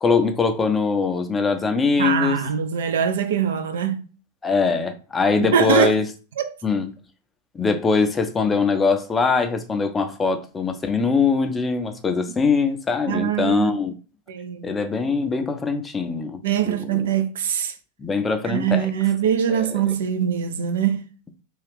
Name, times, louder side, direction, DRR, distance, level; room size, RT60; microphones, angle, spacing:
voice 1, 0.0-2.4 4.4-6.1 6.6-6.9 7.5-13.9 14.6-17.1 18.0-18.9 19.5-19.8, left 4 dB, 15° left, 0.4 m, -22 dB
voice 2, 2.0-4.0 5.4-5.9 6.4-6.5 13.1-13.8 14.3-14.7 16.4-17.7 18.4-21.0, right 8 dB, 60° right, 0.4 m, -23 dB
2.9 x 2.3 x 3.3 m
figure-of-eight pair, 90°, 0 cm